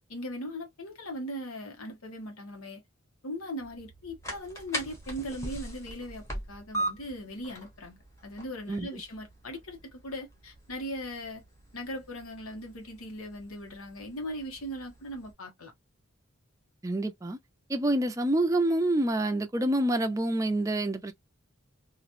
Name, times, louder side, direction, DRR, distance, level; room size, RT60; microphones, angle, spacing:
voice 1, 0.1-2.8 3.2-11.4 11.7-15.7, equal, 85° left, 1.2 m, -39 dB
sound 1, 3.6-15.3, right 1 dB, 15° left, 1.0 m, -41 dB
voice 2, 16.8-17.4 17.7-21.1, right 1 dB, 15° right, 0.4 m, -27 dB
3.0 x 2.5 x 2.5 m
head